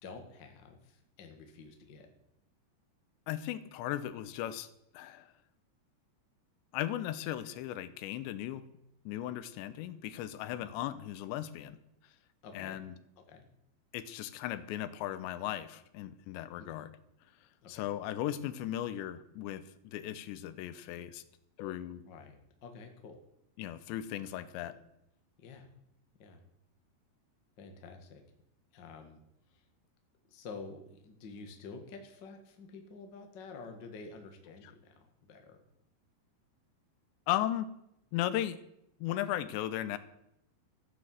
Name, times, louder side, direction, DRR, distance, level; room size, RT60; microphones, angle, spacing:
voice 1, 0.0-2.1 10.5-10.7 12.4-12.8 13.2-13.4 16.5-16.8 17.6-17.9 22.0-22.3 22.6-23.1 24.4-24.8 25.4-25.7 26.2-26.4 27.6-28.2 28.7-29.2 29.5-29.6 30.3-35.6, left 4 dB, 45° left, 4 dB, 1.5 m, -49 dB
voice 2, 3.3-4.7 4.9-5.3 6.7-8.6 9.1-11.8 12.5-12.9 13.9-16.9 17.7-21.2 21.6-22.0 23.6-24.7 37.3-37.7 38.1-38.6 39.0-40.0, left 12 dB, 85° left, 14 dB, 3.1 m, -36 dB
13.5 x 9.9 x 7.8 m, 0.81 s
omnidirectional pair, 5.0 m